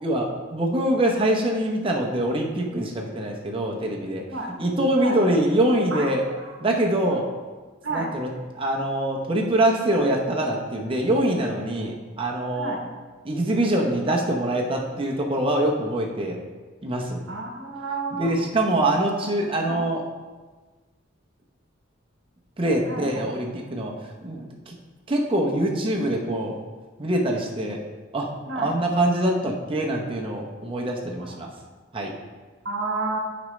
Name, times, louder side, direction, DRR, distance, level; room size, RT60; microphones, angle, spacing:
voice 1, 0.0-4.2 4.6-6.2 6.6-7.3 7.9-8.3 8.5-12.8 13.2-16.4 16.8-17.2 18.1-20.0 22.6-23.9 24.2-24.7 25.1-26.6 27.0-27.8 28.1-31.5 31.9-32.1, right 1 dB, 25° right, 0 dB, 0.8 m, -24 dB
voice 2, 17.3-18.3 19.7-19.8 22.9-23.3 28.5-28.7 31.2-31.4 32.6-33.2, right 3 dB, 65° right, 2 dB, 1.1 m, -31 dB
8.0 x 5.1 x 3.2 m, 1.3 s
head